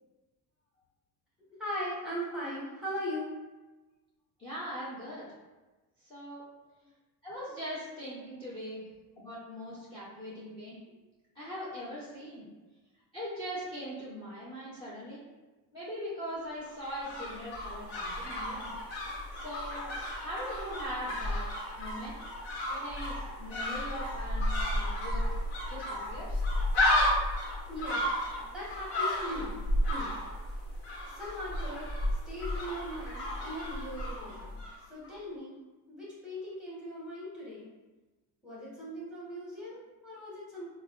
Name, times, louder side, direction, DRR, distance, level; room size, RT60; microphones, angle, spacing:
voice 1, 1.6-3.3 27.7-28.0 28.4-29.6 29.9-30.1 31.1-31.8 32.3-34.6 34.9-35.5 35.9-37.7 38.4-40.7, equal, ahead, -7 dB, 0.8 m, -39 dB
voice 2, 4.4-5.3 6.1-6.4 7.2-8.8 9.2-10.8 11.4-12.4 13.1-15.2 15.7-18.7 19.3-21.5 21.8-22.1 22.7-25.2 25.7-26.4, equal, 15° left, -9 dB, 0.4 m, -41 dB
sound 1, 16.6-34.8 35.0-35.1, left 1 dB, 75° left, 1.1 m, -33 dB
4.6 x 2.1 x 2.3 m, 1.2 s
cardioid pair, 170°, 43 cm